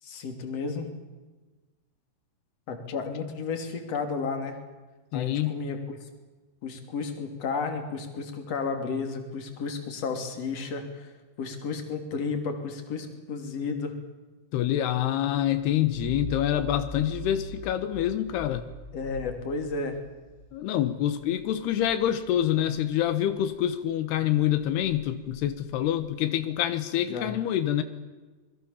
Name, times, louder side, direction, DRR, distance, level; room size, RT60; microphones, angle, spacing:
voice 1, 0.0-0.9 2.7-4.6 5.1-6.0 6.6-13.9 18.9-20.0 27.1-27.3, left 4 dB, 40° left, 5 dB, 3.7 m, -32 dB
voice 2, 5.1-5.6 14.5-18.7 20.5-27.8, left 11 dB, 85° left, 10 dB, 3.2 m, -26 dB
sound 1, 15.5-23.8 24.2-26.8, left 1 dB, 20° left, 2.7 m, -43 dB
27.0 x 22.0 x 7.2 m, 1.3 s
omnidirectional pair, 4.6 m